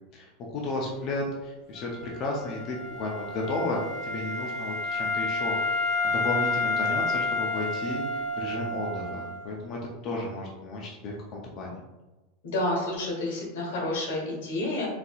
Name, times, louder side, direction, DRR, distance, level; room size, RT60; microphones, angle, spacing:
voice 1, 0.1-9.8 10.0-11.8, left 2 dB, 35° left, -2 dB, 0.5 m, -33 dB
Wind instrument woodwind instrument, 1.7-9.5, left 2 dB, 65° right, 1.1 m, -30 dB
voice 2, 12.4-14.9, left 1 dB, 85° left, -2 dB, 1.4 m, -29 dB
4.0 x 2.7 x 2.3 m, 1.1 s
supercardioid pair, 165°, 0 cm